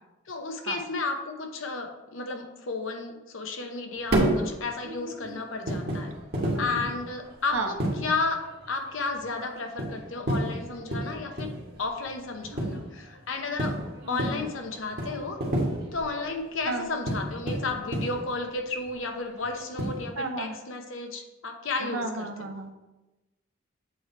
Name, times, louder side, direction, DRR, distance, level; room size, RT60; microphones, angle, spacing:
voice 1, 0.3-6.1 6.6-7.8 8.0-8.4 8.7-11.5 11.8-13.8 14.1-15.4 15.9-22.3, left 3 dB, 80° left, 4 dB, 0.9 m, -33 dB
sound 1, 4.0-20.1, right 1 dB, 50° right, 1.4 m, -32 dB
voice 2, 4.8-5.4 6.5-6.6 7.5-7.7 12.5-12.8 14.0-14.4 16.7-16.9 20.2-20.6 21.8-22.7, right 3 dB, 85° right, 5 dB, 0.7 m, -34 dB
7.7 x 3.2 x 4.3 m, 1.1 s
head